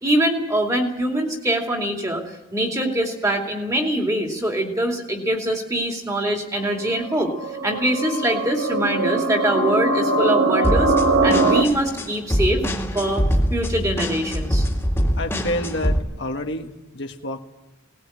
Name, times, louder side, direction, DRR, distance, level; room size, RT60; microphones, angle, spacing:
voice 1, 0.0-7.3 7.6-10.9 11.2-12.6 12.9-13.2 13.5-14.7, right 1 dB, 15° right, 2 dB, 2.6 m, -23 dB
sound 1, 6.5-11.6, right 3 dB, 75° right, 1.8 m, -21 dB
sound 2, 10.6-16.0, equal, 10° left, 2.1 m, -23 dB
voice 2, 15.2-17.4, left 1 dB, 55° left, 4 dB, 1.4 m, -29 dB
19.0 x 17.5 x 8.7 m, 1.0 s
head